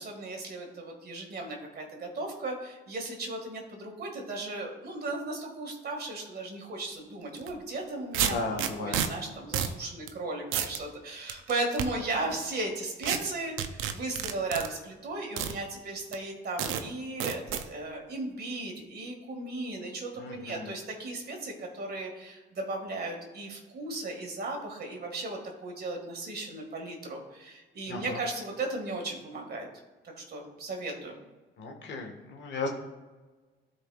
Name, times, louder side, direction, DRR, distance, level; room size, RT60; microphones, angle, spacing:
voice 1, 0.0-8.4 8.8-29.7 30.0-31.2, right 2 dB, 55° right, 2 dB, 1.9 m, -36 dB
sound 1, 7.4-7.5 8.1-9.1 9.5-9.8 10.1-10.2 10.5-10.8 11.3-11.9 13.0-13.2 13.6-14.7 15.4-15.5 16.1-16.2 16.6-16.8 17.2-17.6, right 9 dB, 85° right, 0.6 m, -29 dB
voice 2, 8.2-9.0 12.2-12.3 20.1-20.7 27.9-28.2 31.6-32.7, left 3 dB, 65° left, 2 dB, 1.6 m, -35 dB
13.0 x 5.0 x 2.4 m, 1.3 s
cardioid pair, 90°, 20 cm